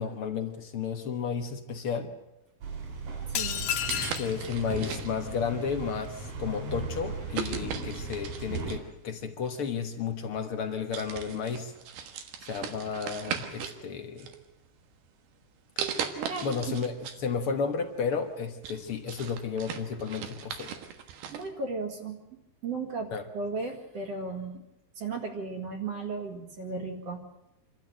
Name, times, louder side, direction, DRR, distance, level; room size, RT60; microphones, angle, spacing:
voice 1, 0.0-2.1 4.2-11.7 12.4-14.3 16.4-20.8 23.1-23.2, left 6 dB, 60° left, 5 dB, 1.4 m, -32 dB
sound 1, 2.6-8.8, right 3 dB, 60° right, 5.0 m, -37 dB
voice 2, 3.3-3.7 16.1-16.8 21.3-24.6 25.0-27.2, right 4 dB, 45° right, 3 dB, 2.7 m, -36 dB
sound 2, 3.4-4.3, left 9 dB, 80° left, 3.1 m, -31 dB
sound 3, 3.7-5.4 6.1-6.3 7.3-8.9 10.0-10.1 10.5-10.7 10.9-13.8 14.2-14.9 15.8-17.2 17.6-17.7 18.2-21.5, right 8 dB, 80° right, 3.4 m, -38 dB
26.5 x 13.0 x 9.1 m, 0.92 s
omnidirectional pair, 4.5 m